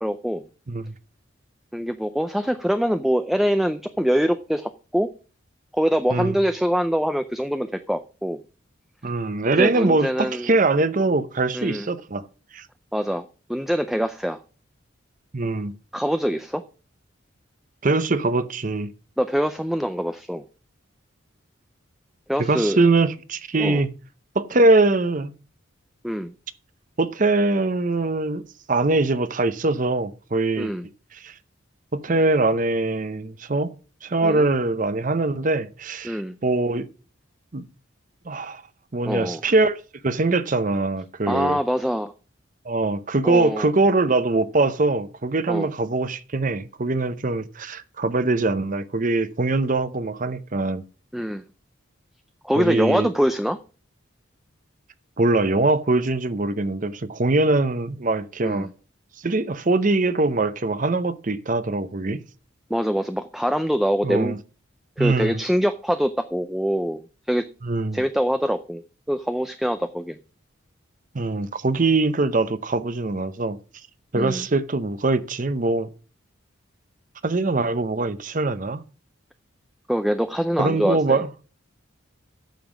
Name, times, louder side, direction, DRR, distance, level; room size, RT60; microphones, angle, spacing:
voice 1, 0.0-0.4 1.7-5.1 5.7-8.4 9.6-10.5 11.5-11.9 12.9-13.2 13.5-14.4 15.9-16.6 19.2-20.4 22.3-22.8 23.6-23.8 26.0-26.3 30.6-30.8 34.2-34.4 36.0-36.4 39.1-39.4 41.3-42.1 43.2-43.7 45.5-45.7 51.1-51.4 52.4-53.6 58.4-58.7 62.7-64.4 65.0-67.5 67.9-68.8 69.1-70.2 74.1-74.5 79.9-81.2, equal, ahead, 0.4 m, -24 dB
voice 2, 9.0-12.2 12.5-12.6 15.3-15.7 17.8-18.9 22.4-23.9 24.3-25.3 27.0-28.4 28.7-30.7 31.1-31.3 31.9-33.7 34.0-36.9 37.5-37.6 38.3-38.6 38.9-39.8 40.0-41.6 42.7-50.8 52.6-53.1 55.2-58.7 59.2-62.2 64.0-64.4 65.0-65.4 67.6-68.0 71.1-73.6 74.1-75.9 77.2-78.8 80.6-81.3, right 2 dB, 40° right, 0.7 m, -22 dB
9.2 x 7.0 x 6.0 m
head